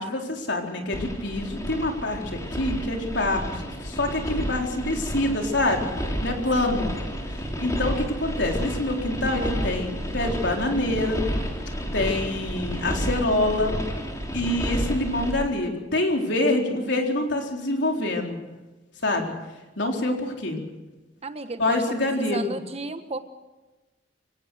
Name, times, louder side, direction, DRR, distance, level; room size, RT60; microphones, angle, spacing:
voice 1, 0.0-3.6 3.8-5.9 6.2-6.9 7.6-11.2 11.9-13.8 14.3-18.4 19.0-19.3 19.8-20.6 21.6-22.6, left 1 dB, 70° left, 2 dB, 4.1 m, -26 dB
sound 1, 0.9-15.3, equal, 20° left, 3.3 m, -31 dB
voice 2, 21.2-23.2, right 2 dB, 35° right, 9 dB, 1.3 m, -34 dB
25.0 x 18.0 x 6.5 m, 1.1 s
head